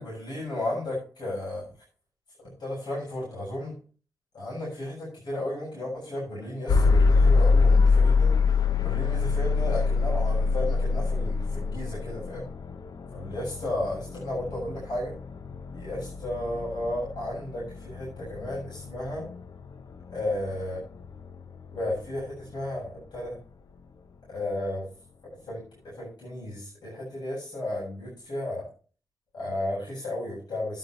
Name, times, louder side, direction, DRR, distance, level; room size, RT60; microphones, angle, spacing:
voice 1, 0.0-1.7 2.4-3.8 4.3-8.4 8.8-12.5 13.1-15.1 15.7-19.3 20.1-20.8 21.7-23.4 24.3-24.9 25.5-25.6 25.8-28.6 29.3-30.8, left 1 dB, 85° left, -6 dB, 7.8 m, -33 dB
sound 1, 6.7-22.6, left 4 dB, 65° left, 0.8 m, -25 dB
12.5 x 12.0 x 3.1 m, 0.39 s
cardioid pair, 70°, 7 cm